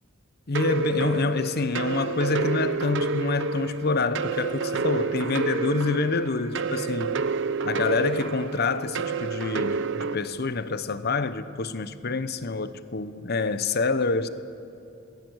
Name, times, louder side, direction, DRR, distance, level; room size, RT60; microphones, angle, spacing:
voice 1, 0.5-7.2 7.6-14.3, left 3 dB, 50° left, 0.9 m, -27 dB
sound 1, 0.5-10.2, right 4 dB, 60° right, 0.8 m, -29 dB
27.5 x 20.0 x 8.0 m
head